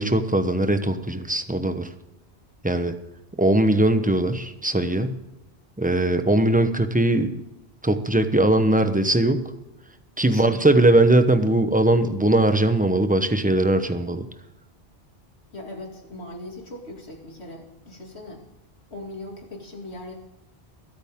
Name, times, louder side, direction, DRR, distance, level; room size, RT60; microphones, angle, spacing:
voice 1, 0.0-1.9 2.6-2.9 3.4-5.2 5.8-7.4 7.8-9.5 10.2-14.2, right 1 dB, 10° right, 8 dB, 0.8 m, -20 dB
voice 2, 10.3-10.8 15.5-18.4 18.9-20.1, left 1 dB, 90° left, 0 dB, 3.0 m, -39 dB
21.5 x 9.1 x 3.7 m, 0.96 s
omnidirectional pair, 1.1 m